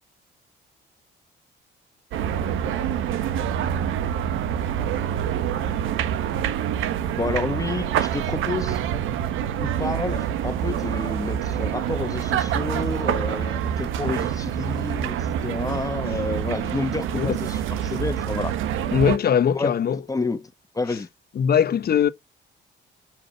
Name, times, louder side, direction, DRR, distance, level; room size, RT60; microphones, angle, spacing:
sound 1, 2.1-19.2, right 9 dB, 90° right, 1.3 m, -26 dB
voice 1, 7.2-8.8 9.6-18.5 19.5-19.7 20.1-21.1, left 3 dB, 15° left, 1.5 m, -30 dB
voice 2, 18.9-20.0 21.3-22.1, left 8 dB, 50° left, 1.1 m, -20 dB
6.6 x 6.0 x 5.6 m
cardioid pair, 90°, 20 cm